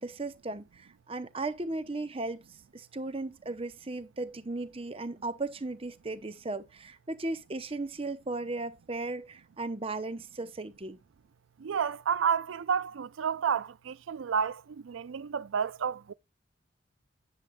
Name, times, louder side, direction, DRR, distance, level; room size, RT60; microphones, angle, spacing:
voice 1, 0.0-2.4 2.7-11.0, right 2 dB, 30° right, 0.8 m, -36 dB
voice 2, 11.6-16.1, right 7 dB, 85° right, 0.4 m, -30 dB
9.5 x 7.6 x 2.3 m
head